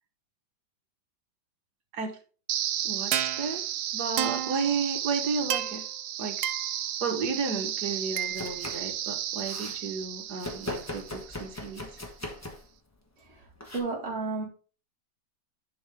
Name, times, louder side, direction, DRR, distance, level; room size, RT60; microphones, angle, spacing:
sound 1, 2.5-11.5, right 11 dB, 85° right, 1.3 m, -32 dB
voice 1, 2.8-3.6 3.9-5.9 6.2-6.5 7.0-11.9, right 5 dB, 60° right, 4 dB, 1.7 m, -33 dB
Domestic sounds home sounds, 8.2-8.9 9.2-9.8 10.4-12.7 13.6-13.8, left 2 dB, 10° left, 0.8 m, -39 dB
voice 2, 13.2-13.5 13.7-14.4, right 3 dB, 35° right, -3 dB, 2.3 m, -32 dB
10.5 x 3.9 x 3.5 m, 0.38 s
omnidirectional pair, 2.0 m